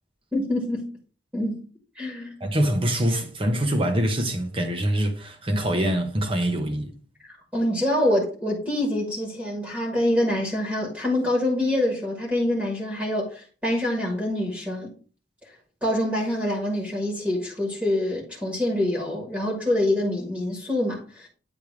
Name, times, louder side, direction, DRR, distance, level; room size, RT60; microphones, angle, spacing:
voice 1, 0.3-0.9 1.3-1.6 2.0-2.4 7.5-14.9 15.8-21.3, left 1 dB, 10° right, 1.7 m, -25 dB
voice 2, 2.4-6.9, right 1 dB, 30° right, 1.1 m, -24 dB
8.9 x 3.5 x 4.6 m
head